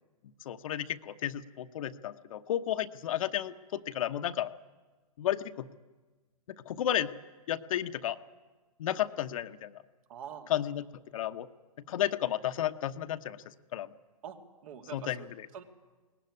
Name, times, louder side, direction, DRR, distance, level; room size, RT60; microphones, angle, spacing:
voice 1, 0.4-4.5 5.2-5.7 6.7-7.1 7.5-8.2 8.8-9.8 10.5-10.8 11.1-11.5 11.9-13.4 13.7-13.9 14.9-15.5, left 11 dB, 60° left, 9 dB, 1.1 m, -32 dB
voice 2, 10.1-10.5 14.2-15.3 15.5-15.6, right 8 dB, 60° right, 5 dB, 2.8 m, -45 dB
22.5 x 18.5 x 9.8 m, 1.3 s
hypercardioid pair, 140°, 20 cm